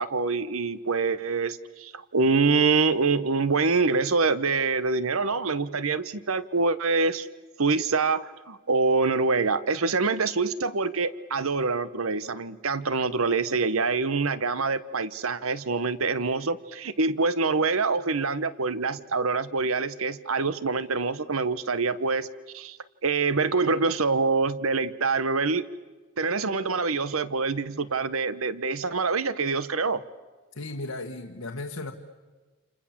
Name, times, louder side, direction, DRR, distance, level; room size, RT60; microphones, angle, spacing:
voice 1, 0.0-7.3 7.6-22.3 22.5-25.6 26.2-30.0, right 4 dB, 75° right, 15 dB, 1.1 m, -25 dB
voice 2, 30.5-31.9, left 2 dB, 85° left, 2 dB, 1.5 m, -35 dB
29.0 x 28.0 x 7.3 m, 1.3 s
head